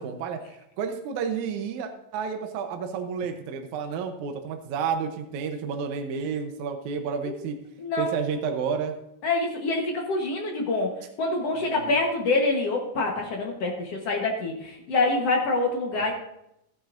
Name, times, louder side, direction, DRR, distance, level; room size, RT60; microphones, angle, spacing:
voice 1, 0.0-7.6 8.0-8.9 11.6-12.0 15.9-16.1, right 6 dB, 75° right, 5 dB, 1.8 m, -31 dB
voice 2, 7.8-8.1 9.2-10.9 11.2-16.1, left 2 dB, 60° left, 1 dB, 1.7 m, -26 dB
15.0 x 10.5 x 2.5 m, 0.83 s
omnidirectional pair, 4.3 m